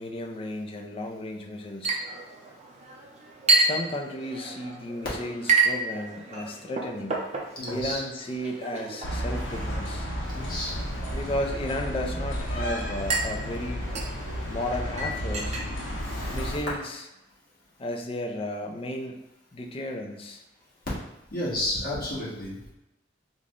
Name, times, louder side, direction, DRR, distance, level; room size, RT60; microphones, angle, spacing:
voice 1, 0.0-2.0 3.6-7.2 7.7-10.1 11.1-13.9 14.5-15.6 16.3-17.0 17.8-19.2 19.5-20.4, left 1 dB, 30° left, 2 dB, 0.4 m, -34 dB
Chink clink, 1.8-16.9, right 3 dB, 40° right, 0.6 m, -31 dB
voice 2, 7.5-8.0 10.3-10.8 16.0-16.5 21.3-22.7, left 1 dB, 55° left, -8 dB, 1.5 m, -32 dB
sound 1, 9.0-16.6, equal, 85° left, 0.7 m, -32 dB
3.8 x 2.1 x 3.6 m, 0.92 s
head